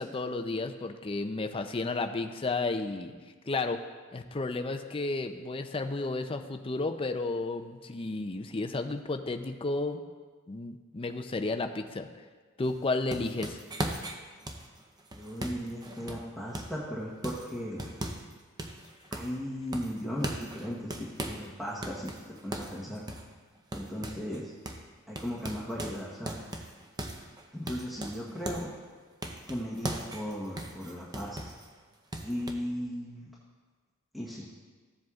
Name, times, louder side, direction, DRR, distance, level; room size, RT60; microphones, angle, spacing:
voice 1, 0.0-3.1 3.4-3.8 4.1-10.0 10.5-12.1 12.6-13.6, left 3 dB, 25° left, 6 dB, 0.5 m, -32 dB
sound 1, 12.6-16.8 17.2-18.3 18.6-19.4 19.7-21.5 21.8-24.4 24.6-24.9 25.2-28.7 29.2-31.7 32.1-32.5, right 1 dB, 20° right, 0.7 m, -39 dB
voice 2, 15.1-17.9 19.1-22.1 22.4-23.0 23.7-24.5 25.1-26.4 27.5-28.7 29.5-31.4 32.2-33.3 34.1-34.5, equal, ahead, -6 dB, 1.1 m, -36 dB
15.5 x 7.7 x 2.4 m, 1.4 s
head